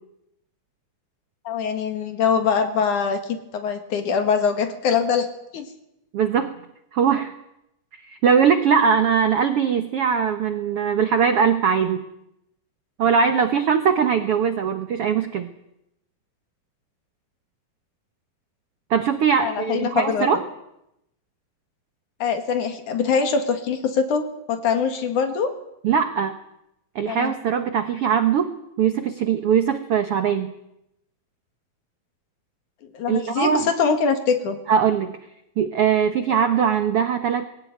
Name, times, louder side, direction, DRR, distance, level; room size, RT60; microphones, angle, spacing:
voice 1, 1.4-5.3 5.5-5.7 19.4-20.3 22.2-25.5 27.1-27.3 32.9-34.6, left 6 dB, 60° left, 7 dB, 3.0 m, -23 dB
voice 2, 6.1-6.5 6.9-7.3 8.1-12.0 13.0-15.5 18.9-20.4 25.8-26.4 26.9-28.5 28.8-30.5 33.1-33.6 34.7-35.2 35.6-37.5, right 7 dB, 70° right, 8 dB, 1.4 m, -21 dB
21.0 x 17.0 x 9.3 m, 0.83 s
omnidirectional pair, 4.2 m